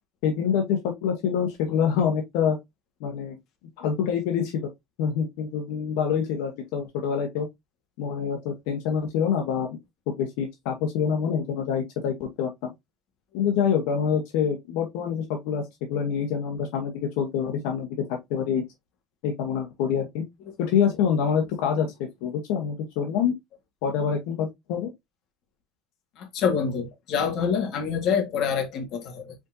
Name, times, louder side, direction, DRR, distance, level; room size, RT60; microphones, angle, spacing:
voice 1, 0.2-2.6 3.0-3.4 3.8-4.7 5.0-7.5 8.0-9.7 10.1-12.5 13.3-17.9 18.3-18.6 19.2-20.2 20.6-21.9 22.2-23.3 23.8-24.9, left 7 dB, 70° left, 1.1 m, -26 dB
voice 2, 26.2-29.3, left 6 dB, 45° left, 1.7 m, -26 dB
5.0 x 3.9 x 2.7 m
cardioid pair, 170°, 0 cm